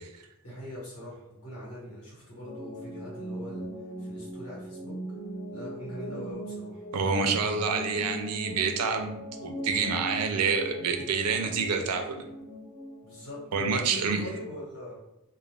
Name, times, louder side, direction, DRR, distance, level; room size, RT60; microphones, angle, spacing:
voice 1, 0.4-3.7 4.0-5.0 5.5-6.8 13.0-15.0, equal, 90° left, -6 dB, 1.3 m, -41 dB
sound 1, 2.5-13.8, equal, 20° left, 0.4 m, -40 dB
voice 2, 6.9-9.2 9.4-12.2 13.5-14.2, right 5 dB, 90° right, 5 dB, 0.4 m, -27 dB
2.4 x 2.2 x 3.2 m, 0.89 s
head